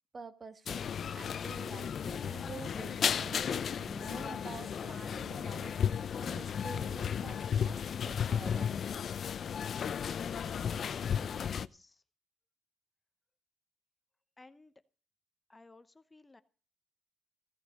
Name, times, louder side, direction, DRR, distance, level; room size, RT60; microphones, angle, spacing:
voice 1, 0.1-0.9 1.1-8.7, right 4 dB, 35° right, 1.3 m, -48 dB
sound 1, 0.7-11.7, left 7 dB, 55° left, 0.6 m, -34 dB
voice 2, 11.2-12.0 14.4-14.7 15.5-16.4, left 3 dB, 20° left, 0.9 m, -58 dB
16.0 x 8.2 x 6.4 m
cardioid pair, 90°, 0 cm